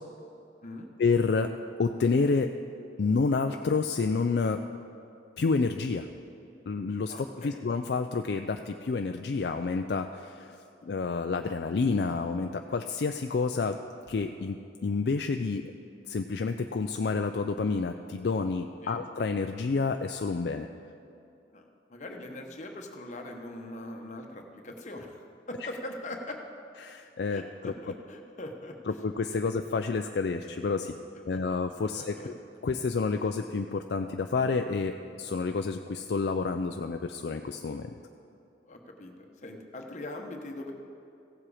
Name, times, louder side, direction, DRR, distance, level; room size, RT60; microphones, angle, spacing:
voice 1, 1.0-1.5 1.8-2.5 3.0-4.6 5.4-6.1 6.7-7.1 7.4-10.5 10.9-13.8 14.1-15.6 16.1-20.7 26.8-27.7 28.9-30.9 31.3-32.3 32.6-37.9, left 4 dB, 60° left, 6 dB, 0.4 m, -29 dB
voice 2, 7.1-7.6 18.8-19.0 21.5-26.4 27.3-29.0 31.3-31.4 31.9-32.3 38.7-40.7, left 1 dB, 40° left, 3 dB, 1.1 m, -42 dB
16.0 x 7.6 x 4.9 m, 2.8 s
head